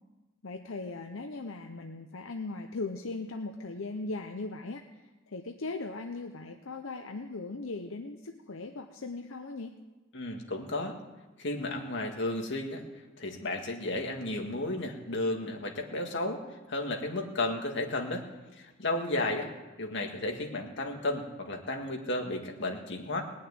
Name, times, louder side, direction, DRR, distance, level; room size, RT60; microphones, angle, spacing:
voice 1, 0.4-9.7, left 3 dB, 85° left, 5 dB, 0.8 m, -39 dB
voice 2, 10.1-11.0 11.4-12.8 13.2-16.4 16.7-18.3 18.5-19.5 19.8-23.2, left 2 dB, 65° left, 2 dB, 1.9 m, -33 dB
19.0 x 6.4 x 9.6 m, 1.1 s
head